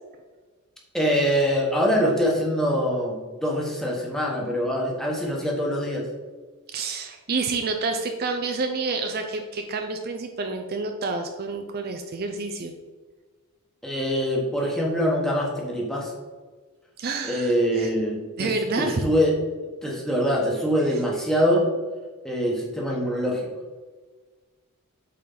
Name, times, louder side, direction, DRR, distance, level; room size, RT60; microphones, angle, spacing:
voice 1, 0.9-6.1 13.8-16.1 17.2-19.3 19.8-21.7 22.2-23.5, equal, ahead, -2 dB, 1.2 m, -24 dB
voice 2, 6.7-12.7 17.0-17.9 18.4-19.1 20.9-21.0, right 3 dB, 45° right, 5 dB, 0.5 m, -29 dB
8.3 x 4.4 x 3.9 m, 1.4 s
head